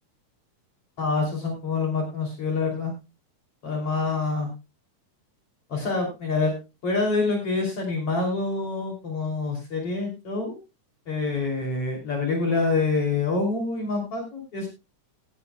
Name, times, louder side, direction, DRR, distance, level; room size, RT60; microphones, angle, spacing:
voice 1, 1.0-2.9 3.6-4.5 5.7-6.5 6.8-10.6 11.1-14.7, left 3 dB, 50° left, 1 dB, 4.0 m, -26 dB
18.0 x 11.0 x 2.3 m, 0.27 s
omnidirectional pair, 3.6 m